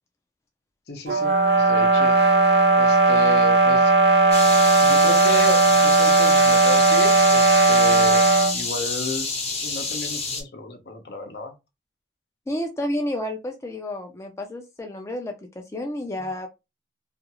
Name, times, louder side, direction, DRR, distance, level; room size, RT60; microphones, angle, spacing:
voice 1, 0.9-2.2 2.8-3.9 4.8-8.2 8.5-11.5, left 2 dB, 70° left, 0.7 m, -33 dB
sound 1, 1.1-8.6, right 3 dB, 65° right, 0.5 m, -17 dB
sound 2, 4.3-10.4, left 3 dB, 35° left, 0.8 m, -28 dB
voice 2, 12.5-16.5, left 1 dB, 15° left, 0.4 m, -30 dB
2.4 x 2.3 x 2.9 m
head